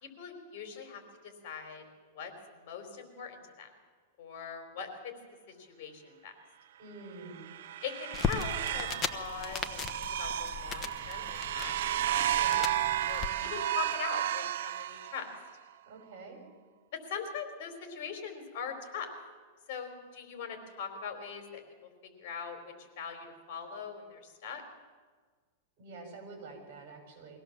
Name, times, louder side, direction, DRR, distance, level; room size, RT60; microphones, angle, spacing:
voice 1, 0.0-1.8 2.1-3.7 4.2-5.1 5.5-6.3 7.8-11.7 12.1-12.6 13.1-15.3 17.1-19.1 19.7-24.6, left 6 dB, 50° left, 6 dB, 4.1 m, -42 dB
voice 2, 6.8-7.4 13.2-13.5 15.8-16.4 25.8-27.4, right 3 dB, 50° right, 4 dB, 6.7 m, -48 dB
sound 1, 7.2-15.5, right 12 dB, 70° right, 0.8 m, -33 dB
sound 2, 8.1-13.3, left 6 dB, 20° left, 1.1 m, -38 dB
23.5 x 17.0 x 7.3 m, 1.5 s
supercardioid pair, 155°, 0 cm